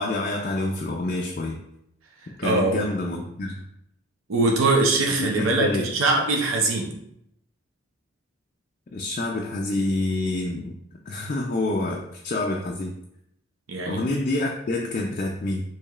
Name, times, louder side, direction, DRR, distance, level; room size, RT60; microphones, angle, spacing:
voice 1, 0.0-1.6 2.4-3.6 5.2-5.9 8.9-10.7 11.1-12.9 13.9-15.6, left 2 dB, 40° left, 0 dB, 0.3 m, -27 dB
voice 2, 2.2-2.8 4.3-6.9 13.7-14.0, right 2 dB, 85° right, 0 dB, 0.7 m, -22 dB
4.7 x 3.0 x 2.3 m, 0.77 s
head